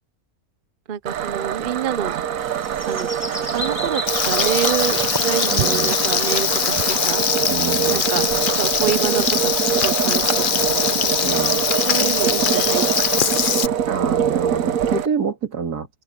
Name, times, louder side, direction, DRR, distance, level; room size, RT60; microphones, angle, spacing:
voice 1, 0.9-2.2 2.9-3.1 3.5-7.2 7.9-8.2 8.6-10.3 10.6-10.9 11.9-13.5, right 8 dB, 45° right, 0.8 m, -27 dB
sound 1, 1.1-15.1, right 9 dB, 65° right, 1.2 m, -24 dB
sound 2, 2.4-12.9, left 1 dB, 15° left, 4.0 m, -35 dB
Frying (food), 4.1-13.7, left 8 dB, 50° left, 0.6 m, -22 dB
voice 2, 5.5-5.9 7.4-8.0 8.3-8.5 11.2-11.6 13.9-15.9, right 5 dB, 85° right, 2.6 m, -27 dB
open air
omnidirectional pair, 1.6 m